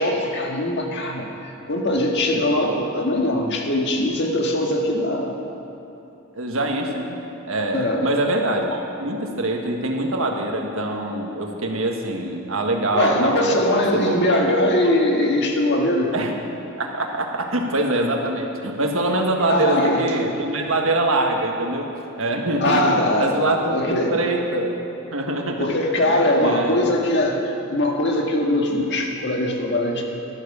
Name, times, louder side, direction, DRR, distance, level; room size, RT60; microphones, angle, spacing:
voice 1, 0.0-5.4 7.7-8.1 12.9-16.1 19.4-20.1 22.6-23.4 23.7-24.2 25.6-30.0, left 1 dB, 55° left, 1 dB, 1.7 m, -21 dB
voice 2, 6.3-7.2 7.5-13.5 13.9-14.2 16.1-16.4 16.8-21.9 22.2-22.8 23.2-24.8 25.1-25.7 26.4-26.9 28.5-28.6, right 1 dB, 65° right, 2 dB, 1.7 m, -24 dB
12.5 x 12.0 x 6.9 m, 3.0 s
head